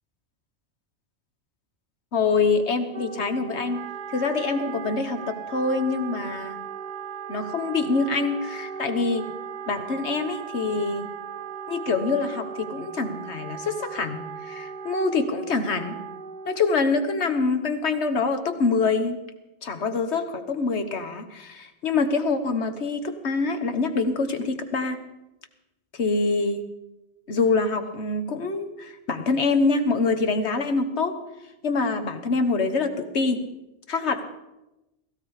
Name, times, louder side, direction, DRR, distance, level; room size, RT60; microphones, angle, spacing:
voice 1, 2.1-3.8 4.1-6.6 7.3-9.3 9.7-11.1 11.7-15.9 16.4-19.2 19.6-25.0 25.9-26.6 27.3-31.2 31.6-33.4 33.9-34.3, left 4 dB, 75° left, 8 dB, 1.6 m, -25 dB
Wind instrument woodwind instrument, 2.9-17.0, right 7 dB, 45° right, 0.9 m, -37 dB
16.5 x 16.5 x 4.9 m, 0.97 s
omnidirectional pair, 1.1 m